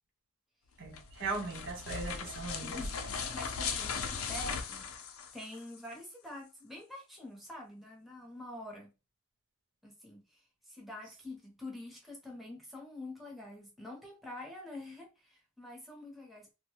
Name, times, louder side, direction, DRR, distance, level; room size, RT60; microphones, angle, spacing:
sound 1, 0.8-5.8, left 5 dB, 75° left, 0.5 m, -38 dB
voice 1, 0.8-2.8, right 4 dB, 55° right, 0.6 m, -38 dB
voice 2, 2.6-4.9 5.3-8.9 9.8-10.4 10.7-16.5, left 2 dB, ahead, 0.9 m, -46 dB
2.6 x 2.2 x 2.9 m
head